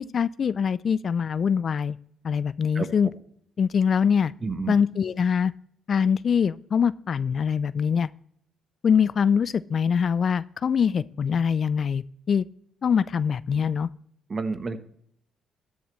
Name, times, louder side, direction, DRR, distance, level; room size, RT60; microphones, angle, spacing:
voice 1, 0.0-2.0 2.2-3.1 3.6-4.3 4.7-5.5 5.9-8.1 8.8-12.5 12.8-13.9, left 7 dB, 50° left, 18 dB, 0.3 m, -23 dB
voice 2, 4.4-4.8 14.3-14.8, right 4 dB, 35° right, 10 dB, 1.1 m, -29 dB
14.0 x 10.0 x 3.1 m, 0.67 s
cardioid pair, 90°, 0 cm